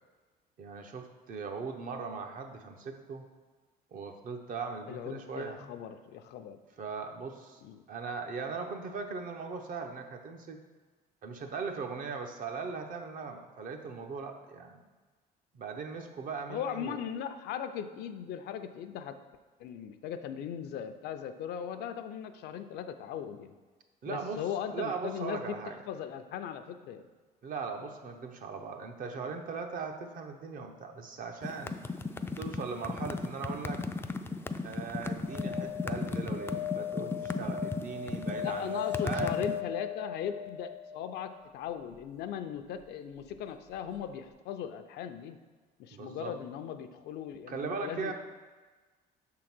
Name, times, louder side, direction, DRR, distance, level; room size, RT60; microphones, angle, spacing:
voice 1, 0.6-3.2 3.9-5.6 6.8-7.6 7.9-10.6 11.2-14.8 15.5-17.0 24.0-24.4 24.7-25.8 27.4-31.8 32.4-33.8 34.6-39.4 45.9-46.3 47.5-48.1, right 5 dB, 55° right, 5 dB, 0.8 m, -39 dB
voice 2, 4.9-6.6 7.6-7.8 16.5-19.2 19.6-23.5 24.0-25.6 25.9-27.0 38.4-45.4 45.8-48.1, left 9 dB, 75° left, 9 dB, 0.5 m, -38 dB
sound 1, 31.4-39.6, left 3 dB, 15° left, 0.3 m, -35 dB
sound 2, 35.2-41.4 43.7-43.8 44.0-44.1, left 7 dB, 85° right, 0.9 m, -38 dB
6.3 x 3.8 x 6.0 m, 1.3 s
cardioid pair, 110°, 17 cm